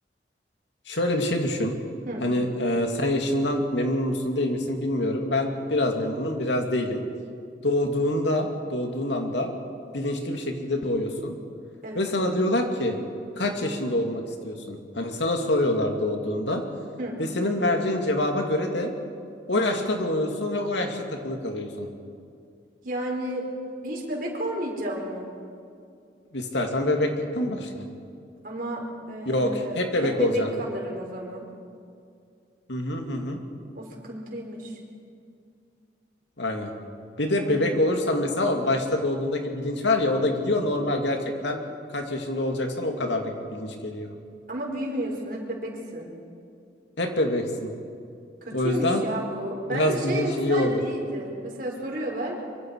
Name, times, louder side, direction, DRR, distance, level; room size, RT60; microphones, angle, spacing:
voice 1, 0.9-1.7 2.2-7.0 7.6-9.5 9.9-11.3 11.9-13.0 13.4-16.7 17.2-18.9 19.5-21.9 26.3-27.9 29.2-30.5 32.7-33.4 36.4-36.7 37.2-41.6 41.9-44.1 47.0-47.7 48.5-49.0 49.7-50.8, left 1 dB, 75° left, 3 dB, 2.5 m, -26 dB
voice 2, 22.8-23.5 23.8-25.3 28.4-31.4 33.7-34.8 37.3-37.6 44.5-46.1 48.4-52.4, right 1 dB, 50° right, -1 dB, 4.5 m, -32 dB
24.5 x 24.0 x 4.8 m, 2.4 s
head